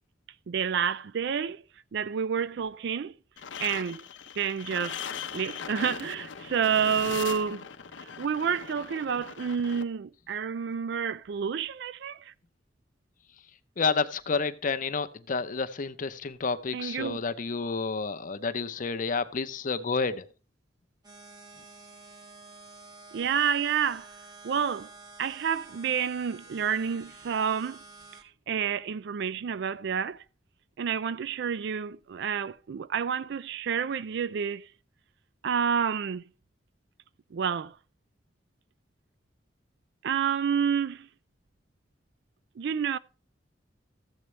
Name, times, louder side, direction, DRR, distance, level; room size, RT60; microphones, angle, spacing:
voice 1, 0.5-1.6 1.9-3.1 3.6-4.0 4.4-5.0 5.3-7.7 8.2-12.3 16.7-17.2 23.1-24.1 24.4-24.9 25.2-27.8 28.5-30.2 30.8-34.6 35.4-36.2 37.3-37.7 40.0-41.1 42.6-43.0, right 7 dB, 65° right, 0.4 m, -29 dB
sound 1, 3.4-9.8, left 7 dB, 90° left, 0.7 m, -40 dB
voice 2, 13.8-20.2, left 4 dB, 45° left, 0.6 m, -30 dB
sound 2, 21.0-28.2, right 3 dB, 20° right, 1.3 m, -50 dB
13.5 x 8.0 x 3.2 m
head